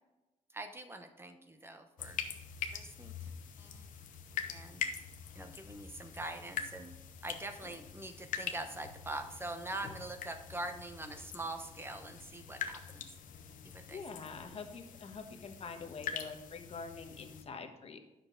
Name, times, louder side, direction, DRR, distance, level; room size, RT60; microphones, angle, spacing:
voice 1, 0.5-2.2 2.7-3.3 3.6-3.9 4.5-4.8 5.3-6.9 7.2-13.1 13.6-14.0, right 2 dB, 15° right, 7 dB, 1.0 m, -43 dB
sound 1, 2.0-17.4, left 7 dB, 80° left, 0.9 m, -44 dB
voice 2, 13.9-18.0, left 5 dB, 50° left, 6 dB, 1.2 m, -45 dB
9.7 x 6.6 x 3.9 m, 1.1 s
cardioid pair, 105°, 13 cm